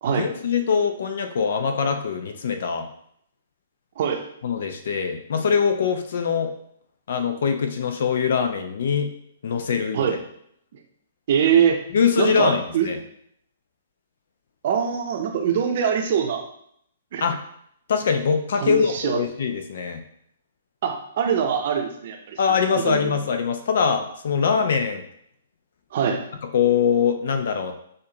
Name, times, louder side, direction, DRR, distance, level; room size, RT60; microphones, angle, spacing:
voice 1, 0.2-2.9 4.4-6.5 7.1-9.1 9.4-10.2 11.9-13.0 17.2-17.4 17.9-20.0 22.4-25.0 26.1-26.2 26.5-27.7, left 6 dB, 60° left, 7 dB, 0.6 m, -23 dB
voice 2, 11.3-11.8 12.2-12.9 14.6-16.4 17.1-17.3 18.6-19.2 20.8-22.4 22.7-23.1 25.9-26.2, right 8 dB, 50° right, 4 dB, 0.7 m, -23 dB
6.4 x 2.5 x 2.9 m, 0.69 s
figure-of-eight pair, 120°, 0 cm